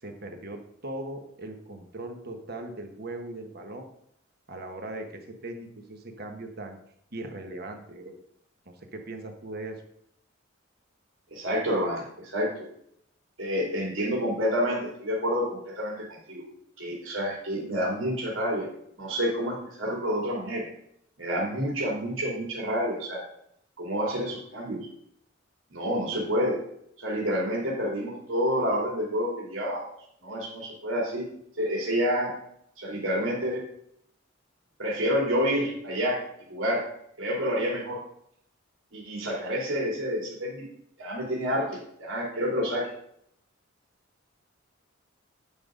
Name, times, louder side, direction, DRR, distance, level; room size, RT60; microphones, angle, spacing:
voice 1, 0.0-3.9 4.5-6.8 7.1-8.2 8.7-9.8, right 2 dB, 50° right, 5 dB, 1.3 m, -39 dB
voice 2, 11.3-12.7 13.4-16.5 16.8-18.7 19.0-20.7 21.2-23.2 23.8-24.8 25.7-26.6 27.0-29.8 30.2-31.3 31.6-32.3 32.8-33.6 34.8-36.2 36.5-36.8 37.2-38.0 38.9-40.6 41.0-42.9, equal, 80° right, -3 dB, 2.8 m, -28 dB
8.7 x 5.4 x 5.1 m, 0.72 s
head